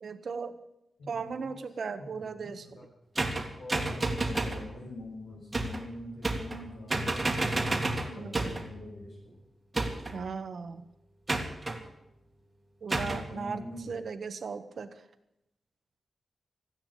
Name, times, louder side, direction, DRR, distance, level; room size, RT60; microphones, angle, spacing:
voice 1, 0.0-0.6 1.1-2.8 8.2-8.5 10.1-10.8 12.8-14.9, right 5 dB, 60° right, 10 dB, 1.4 m, -37 dB
voice 2, 1.0-1.6 2.0-2.9 3.6-7.5 7.8-9.4 13.0-14.0, left 1 dB, 75° left, -6 dB, 6.3 m, -44 dB
sound 1, 3.2-4.6 5.5-5.9 6.2-6.6 6.9-8.7 9.7-10.2 11.3-11.8 12.9-13.3, right 2 dB, 25° right, 2.1 m, -30 dB
15.0 x 10.5 x 8.9 m, 0.84 s
wide cardioid pair, 110°, 0 cm